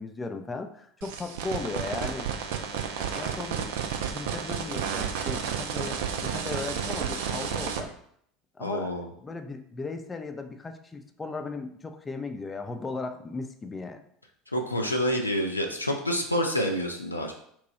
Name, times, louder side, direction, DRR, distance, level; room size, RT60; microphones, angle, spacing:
voice 1, 0.0-2.3 2.7-3.7 4.1-7.9 8.6-14.0, left 3 dB, 20° left, 6 dB, 0.4 m, -37 dB
sound 1, 1.0-7.8, right 7 dB, 65° right, 0.4 m, -31 dB
voice 2, 8.6-9.1 14.5-17.3, equal, 90° left, 2 dB, 0.4 m, -28 dB
2.9 x 2.2 x 4.0 m, 0.67 s
figure-of-eight pair, 70°, 0 cm